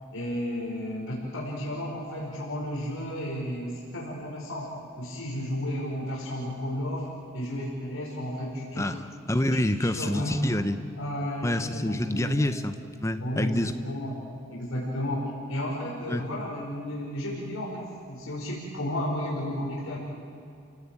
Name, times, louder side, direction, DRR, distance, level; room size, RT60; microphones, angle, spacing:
voice 1, 0.0-4.7 5.0-7.1 7.3-8.9 9.8-10.5 11.0-12.5 13.2-20.0, equal, 85° left, -4 dB, 5.0 m, -33 dB
voice 2, 8.8-10.8 11.4-12.7 13.0-13.7 16.1-16.2, left 1 dB, 15° left, 9 dB, 1.0 m, -27 dB
29.0 x 17.5 x 8.9 m, 2.6 s
head